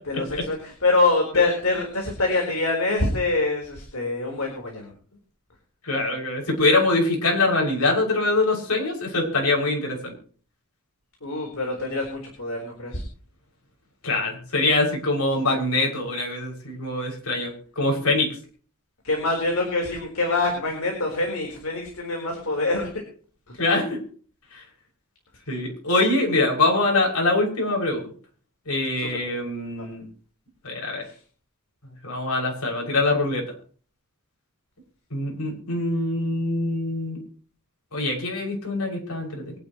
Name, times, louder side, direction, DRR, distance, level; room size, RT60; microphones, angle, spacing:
voice 1, 0.1-4.9 11.2-13.0 19.0-22.9 23.5-23.6 29.0-29.2 29.7-29.8 31.0-31.2, left 2 dB, 70° left, 1 dB, 4.3 m, -25 dB
voice 2, 5.8-10.1 14.0-18.3 23.6-24.0 24.5-24.6 25.5-28.0 28.6-30.0 30.6-31.0 32.0-33.4 35.1-37.2 37.9-39.5, left 2 dB, 85° left, 0 dB, 6.6 m, -24 dB
24.0 x 10.5 x 3.2 m, 0.42 s
head